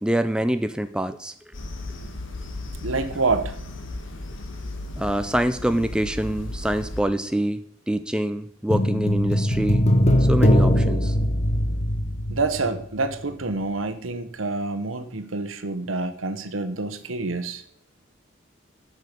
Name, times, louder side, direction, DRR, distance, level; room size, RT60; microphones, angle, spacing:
voice 1, 0.0-1.3 5.0-9.8 10.2-11.2, right 1 dB, 5° right, 9 dB, 0.4 m, -25 dB
sound 1, 1.5-7.0, left 2 dB, 70° left, 1.3 m, -35 dB
voice 2, 2.8-3.5 12.3-17.6, right 3 dB, 85° right, 10 dB, 1.1 m, -27 dB
sound 2, 8.7-13.2 13.4-13.5, equal, 30° left, 0.9 m, -21 dB
10.5 x 6.5 x 5.2 m, 0.65 s
head